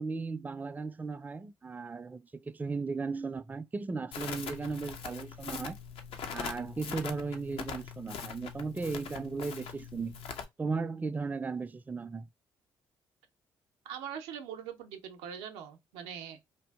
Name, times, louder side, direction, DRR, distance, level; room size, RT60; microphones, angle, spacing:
voice 1, 0.0-5.8 6.3-10.2 10.6-12.3, right 4 dB, 15° right, 0.3 m, -36 dB
Crackle, 4.1-10.4, left 6 dB, 70° left, 0.5 m, -42 dB
voice 2, 13.8-16.5, right 8 dB, 85° right, 0.4 m, -42 dB
2.6 x 2.5 x 2.2 m
hypercardioid pair, 50°, 10 cm